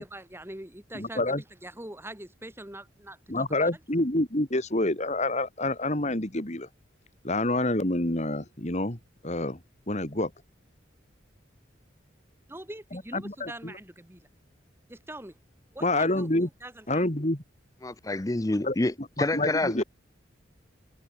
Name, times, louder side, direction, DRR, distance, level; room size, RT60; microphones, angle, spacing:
voice 1, 0.0-3.8 12.5-14.3 14.9-15.4 15.7-17.0, right 1 dB, 10° right, 3.1 m, -43 dB
voice 2, 0.9-1.4 3.3-6.7 7.2-9.0 9.2-9.6 9.9-10.3 12.9-13.7 15.8-16.5 16.9-17.4 18.6-19.1 19.3-19.8, left 2 dB, 35° left, 2.6 m, -27 dB
voice 3, 17.8-18.9 19.2-19.8, left 2 dB, 20° left, 0.6 m, -27 dB
head